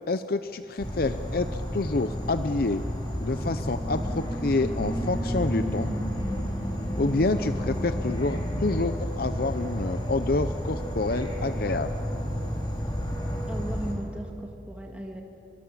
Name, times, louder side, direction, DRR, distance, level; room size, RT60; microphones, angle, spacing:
voice 1, 0.1-2.8 3.2-5.9 7.0-11.9, left 3 dB, 55° left, 10 dB, 0.7 m, -28 dB
Insect / Frog, 0.8-13.9, equal, 25° left, 3.8 m, -31 dB
voice 2, 13.5-15.2, right 1 dB, 5° right, 2 dB, 1.8 m, -37 dB
24.5 x 24.0 x 7.5 m, 2.7 s
head